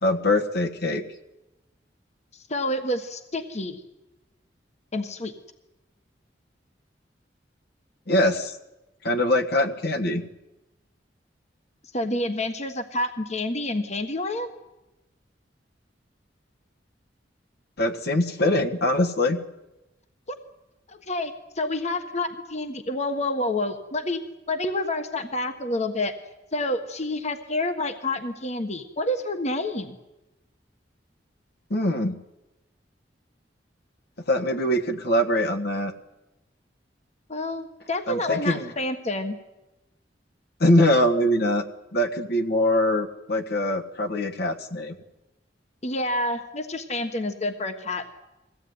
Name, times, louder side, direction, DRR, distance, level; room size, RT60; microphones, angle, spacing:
voice 1, 0.0-1.0 8.1-8.6 9.0-10.2 17.8-19.4 31.7-32.2 34.3-35.9 38.1-38.7 40.6-41.6 41.9-45.0, left 1 dB, 60° left, 5 dB, 1.5 m, -23 dB
voice 2, 2.5-3.8 4.9-5.3 11.9-14.5 20.9-24.2 24.5-26.1 26.5-30.0 37.3-39.4 45.8-48.1, left 2 dB, 40° left, 7 dB, 1.4 m, -28 dB
22.5 x 16.0 x 9.5 m, 1.0 s
head